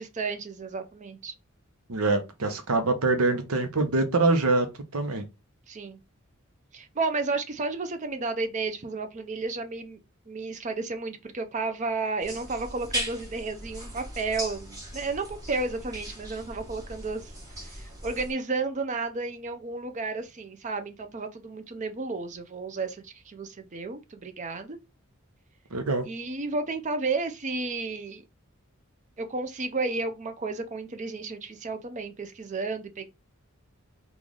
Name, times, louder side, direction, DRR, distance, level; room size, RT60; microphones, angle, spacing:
voice 1, 0.0-1.3 5.7-6.0 6.7-10.0 10.3-17.3 17.6-24.8 26.0-28.2 29.2-33.1, right 3 dB, 35° right, 0.5 m, -32 dB
voice 2, 1.9-5.2 25.7-26.0, right 3 dB, 85° right, 0.8 m, -24 dB
sound 1, 12.2-18.3, right 1 dB, 15° right, 1.4 m, -38 dB
3.2 x 2.4 x 3.8 m
head